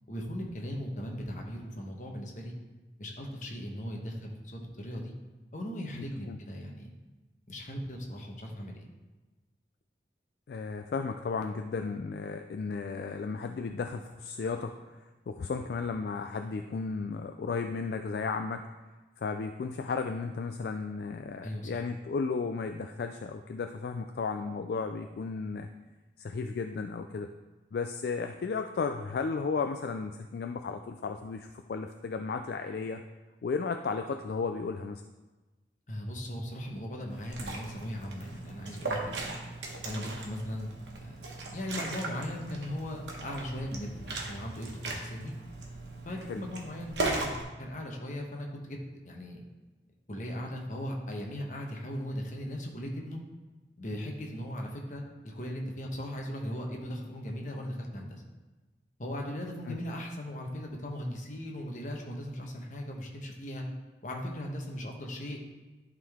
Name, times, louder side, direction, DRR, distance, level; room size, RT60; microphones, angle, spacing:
voice 1, 0.1-2.5 3.0-5.1 5.5-6.9 7.5-8.8 21.4-21.8 35.9-39.4 39.8-40.7 41.1-41.2 41.5-45.3 46.0-48.8 49.0-49.4 50.1-53.2 53.8-58.2 59.0-63.6 64.0-65.4, equal, 45° left, 0 dB, 1.0 m, -38 dB
voice 2, 5.9-6.4 10.5-15.0 15.3-18.6 19.2-25.7 26.2-27.3 27.7-33.0 33.4-35.0 46.3-46.4 59.7-59.8, left 4 dB, 60° left, 6 dB, 0.3 m, -34 dB
Liquid, 37.1-47.4, right 2 dB, 80° right, 1.2 m, -38 dB
11.0 x 3.8 x 3.5 m, 1.2 s
head